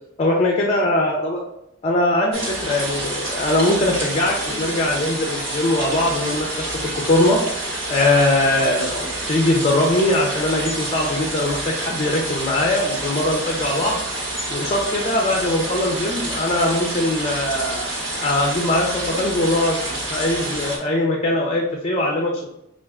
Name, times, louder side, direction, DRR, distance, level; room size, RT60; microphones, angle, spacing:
voice 1, 0.2-1.4 1.8-6.8 7.1-7.4 7.9-14.0 14.5-17.9 18.2-19.8 20.1-22.5, left 1 dB, 35° left, 0 dB, 0.5 m, -21 dB
sound 1, 2.3-20.8, right 1 dB, 65° right, 1.2 m, -28 dB
5.6 x 2.4 x 2.3 m, 0.82 s
head